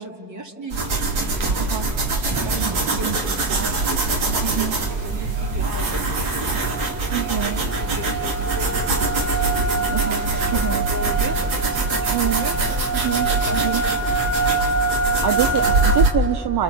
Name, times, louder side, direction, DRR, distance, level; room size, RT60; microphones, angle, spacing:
voice 1, 0.0-2.0 2.3-9.0 9.3-13.8 14.0-14.3, right 1 dB, 40° right, 3 dB, 2.8 m, -37 dB
sound 1, 0.7-16.1, right 3 dB, 90° right, 2.7 m, -23 dB
voice 2, 1.6-1.9 2.5-3.2 4.4-4.8 7.1-7.6 9.9-10.9 12.1-12.4 13.0-13.8 15.0-16.6, right 12 dB, 55° right, 10 dB, 0.8 m, -26 dB
sound 2, 3.8-3.9 4.2-4.6 5.0-16.0, right 3 dB, 5° right, 4.0 m, -27 dB
30.0 x 28.5 x 7.1 m, 2.8 s
supercardioid pair, 60°, 46 cm